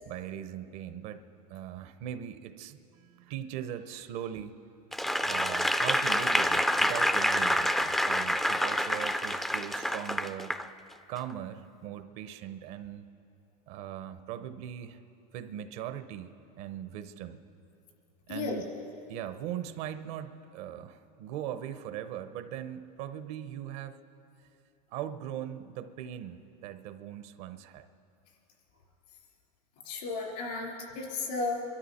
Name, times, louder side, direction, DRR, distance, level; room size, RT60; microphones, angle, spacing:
voice 1, 0.1-1.2 1.5-4.6 5.2-10.5 11.1-13.1 13.7-15.0 15.3-17.4 18.3-18.7 19.1-24.0 24.9-27.9, right 10 dB, 60° right, 11 dB, 0.8 m, -40 dB
Applause / Crowd, 4.9-10.6 11.2-11.3, equal, ahead, 0.4 m, -27 dB
voice 2, 29.8-31.6, left 3 dB, 80° left, -1 dB, 3.8 m, -34 dB
24.0 x 13.0 x 4.3 m, 2.7 s
supercardioid pair, 125°, 20 cm